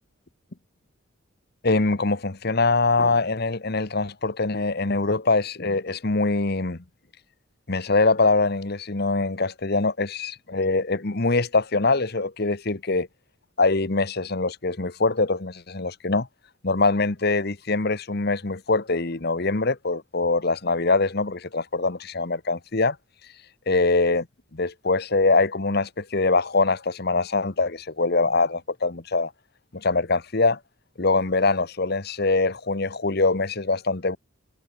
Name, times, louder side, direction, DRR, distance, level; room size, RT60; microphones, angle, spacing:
voice 1, 1.6-6.8 7.7-13.1 13.6-16.3 16.6-23.0 23.7-24.3 24.5-29.3 29.7-30.6 31.0-34.2, left 3 dB, 45° left, 1.1 m, -23 dB
head